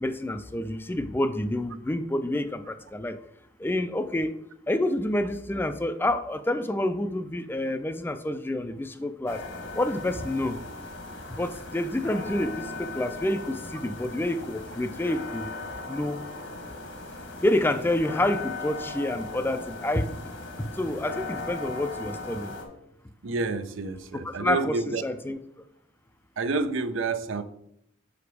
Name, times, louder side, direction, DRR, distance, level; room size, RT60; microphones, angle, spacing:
voice 1, 0.0-3.2 3.6-4.3 4.7-9.4 9.7-10.6 11.3-15.5 15.9-16.2 17.4-20.3 20.6-22.6 24.4-25.4, left 1 dB, 10° left, 10 dB, 0.3 m, -28 dB
sound 1, 9.3-22.6, left 3 dB, 80° left, 1.3 m, -38 dB
voice 2, 23.2-25.0 26.4-27.4, right 3 dB, 80° right, 11 dB, 0.6 m, -29 dB
6.0 x 5.0 x 4.7 m, 0.73 s
head